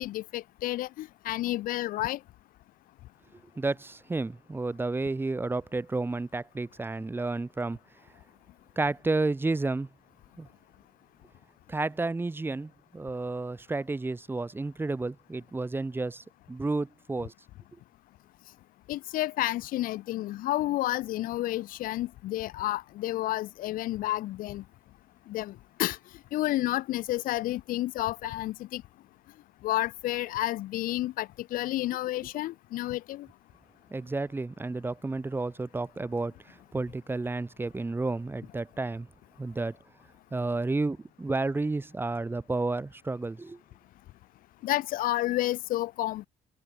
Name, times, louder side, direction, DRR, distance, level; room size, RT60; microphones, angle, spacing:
voice 1, 0.0-2.2 18.9-24.6 25.3-26.0 26.3-28.8 29.6-33.3 44.6-46.3, left 16 dB, 75° left, 1.3 m, -30 dB
voice 2, 3.6-7.8 8.8-9.9 10.4-10.5 11.7-17.3 33.9-39.1 39.4-39.8 40.3-43.6, right 3 dB, 15° right, 2.8 m, -31 dB
cardioid pair, 125°, 15 cm